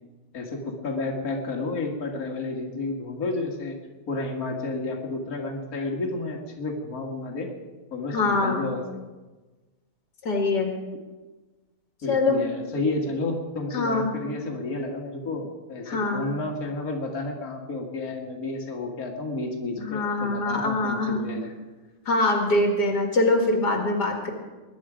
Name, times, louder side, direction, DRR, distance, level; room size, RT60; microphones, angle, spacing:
voice 1, 0.3-3.8 4.1-7.5 7.9-8.8 12.0-21.5, left 2 dB, 60° left, 0 dB, 2.4 m, -31 dB
voice 2, 8.1-8.8 10.2-10.7 12.1-12.4 13.7-14.1 15.9-16.3 19.8-21.2 22.1-24.3, left 2 dB, 90° left, 2 dB, 2.7 m, -24 dB
21.0 x 11.5 x 5.0 m, 1.2 s
omnidirectional pair, 1.7 m